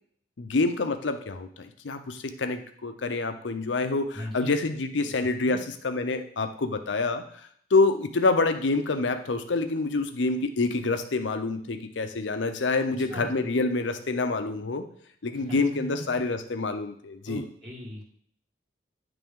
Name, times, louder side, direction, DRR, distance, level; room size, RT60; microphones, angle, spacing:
voice 1, 0.4-14.8 15.2-17.4, left 3 dB, 85° left, 8 dB, 0.7 m, -27 dB
voice 2, 4.1-4.6 5.0-5.1 5.4-5.6 12.9-13.3 15.3-16.0 17.3-18.0, equal, 30° right, -5 dB, 2.0 m, -39 dB
10.0 x 3.4 x 3.6 m, 0.62 s
head